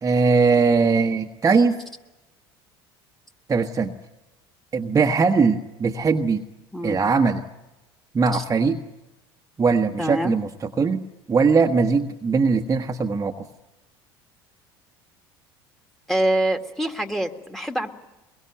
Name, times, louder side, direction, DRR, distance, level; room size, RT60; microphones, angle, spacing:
voice 1, 0.0-1.8 3.5-3.9 4.7-6.4 6.8-7.4 8.1-8.8 9.6-11.0 11.3-13.5, right 4 dB, 25° right, 3 dB, 1.2 m, -20 dB
voice 2, 10.0-10.4 16.1-17.9, right 1 dB, ahead, 6 dB, 2.1 m, -25 dB
23.0 x 22.5 x 9.1 m, 0.99 s
hypercardioid pair, 70°, 13 cm